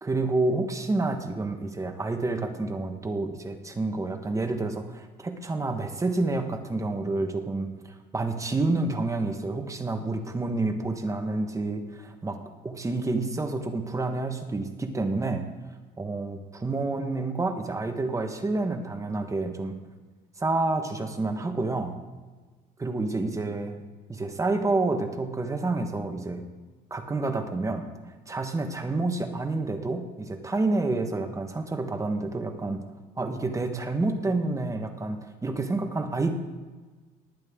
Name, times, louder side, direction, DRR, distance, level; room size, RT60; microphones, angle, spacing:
voice 1, 0.0-7.7 8.1-12.4 12.6-15.5 16.0-19.8 20.4-21.9 22.8-23.8 24.1-26.4 26.9-27.9 28.3-32.8 33.2-36.3, right 2 dB, 20° right, 6 dB, 1.3 m, -29 dB
19.5 x 8.9 x 3.7 m, 1.3 s
cardioid pair, 110°, 17 cm